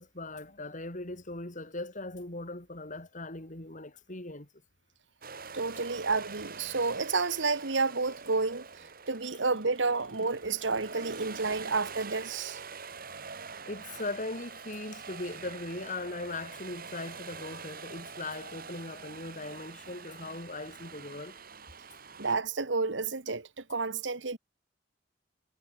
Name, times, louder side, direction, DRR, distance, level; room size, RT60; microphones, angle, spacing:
voice 1, 0.0-4.5 13.1-13.2 13.6-21.4, left 2 dB, 45° left, 3.9 m, -39 dB
sound 1, 5.2-22.4, right 5 dB, 50° right, 6.4 m, -45 dB
voice 2, 5.5-8.7 9.1-12.6 22.2-24.4, right 4 dB, 75° right, 1.6 m, -30 dB
head